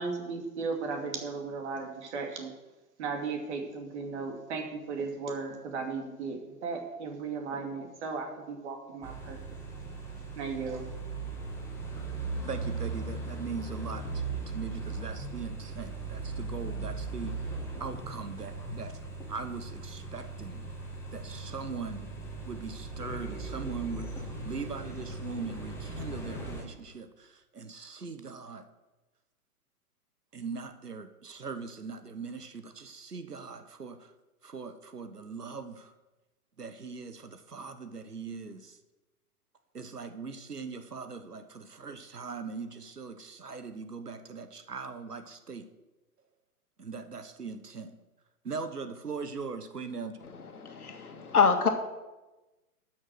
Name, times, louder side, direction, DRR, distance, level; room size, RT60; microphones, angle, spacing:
voice 1, 0.0-2.5 3.0-9.4 10.4-10.9, right 4 dB, 45° right, 3 dB, 2.6 m, -36 dB
sound 1, 9.0-26.6, right 3 dB, 5° left, 1.9 m, -38 dB
voice 2, 12.4-17.4 17.8-19.0 19.3-20.6 21.1-22.1 22.5-28.7 30.3-34.1 34.4-35.9 36.6-38.8 39.7-45.7 46.8-47.9 48.4-50.2, right 5 dB, 85° right, 11 dB, 1.2 m, -40 dB
voice 3, 50.3-51.7, left 5 dB, 70° left, 5 dB, 1.9 m, -26 dB
12.0 x 6.4 x 6.3 m, 1.1 s
figure-of-eight pair, 120°, 46 cm